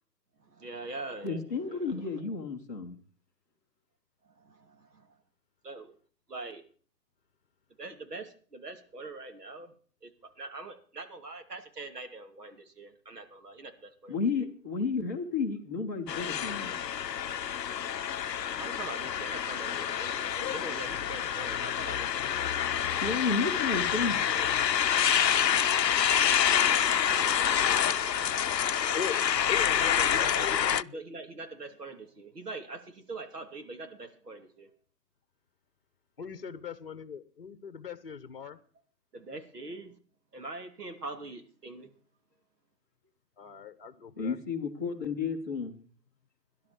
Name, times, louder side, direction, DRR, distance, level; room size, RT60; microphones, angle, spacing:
voice 1, 0.4-2.0 4.2-5.2 5.6-5.9 6.3-6.6 7.8-9.7 10.0-14.4 18.6-22.3 24.2-24.5 27.1-28.4 29.8-34.7 39.1-40.0 40.3-41.9, right 3 dB, 70° right, 6 dB, 2.9 m, -43 dB
voice 2, 1.2-3.0 14.1-16.8 23.0-24.2 44.2-45.8, left 4 dB, 10° left, -3 dB, 0.9 m, -32 dB
sound 1, 16.1-30.8, left 9 dB, 75° left, 0.7 m, -27 dB
voice 3, 28.9-29.8 30.1-31.0 36.2-38.6 43.4-44.4, left 6 dB, 35° left, 14 dB, 1.2 m, -40 dB
18.0 x 11.5 x 4.5 m, 0.44 s
figure-of-eight pair, 155°, 49 cm